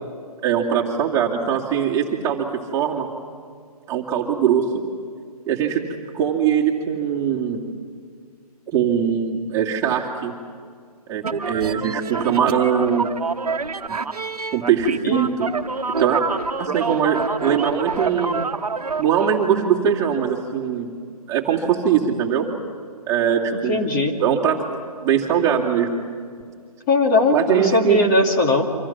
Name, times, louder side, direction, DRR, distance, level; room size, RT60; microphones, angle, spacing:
voice 1, 0.4-3.1 3.9-4.7 5.5-5.8 6.1-7.6 8.7-10.3 11.1-13.1 13.9-14.0 14.5-15.5 16.0-16.2 16.6-18.5 19.0-20.9 21.3-22.5 23.1-23.9 24.1-24.6 25.0-26.0 27.3-28.0, right 8 dB, 15° right, -2 dB, 2.5 m, -21 dB
sound 1, 11.2-19.3, right 4 dB, 75° right, 1.2 m, -27 dB
voice 2, 23.7-24.1 26.9-28.7, left 2 dB, 30° left, 2 dB, 2.6 m, -19 dB
29.0 x 26.0 x 5.9 m, 2.1 s
figure-of-eight pair, 140°, 20 cm